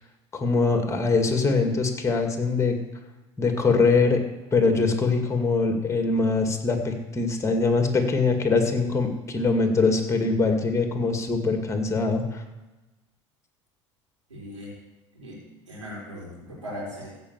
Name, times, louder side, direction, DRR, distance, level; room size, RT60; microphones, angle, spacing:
voice 1, 0.3-2.8 3.4-4.2 4.5-12.4, left 4 dB, 20° left, 5 dB, 2.2 m, -23 dB
voice 2, 14.3-14.8 15.1-15.4 15.7-17.1, left 1 dB, 90° right, -5 dB, 4.0 m, -38 dB
15.0 x 5.5 x 7.3 m, 1.1 s
figure-of-eight pair, 65°, 16 cm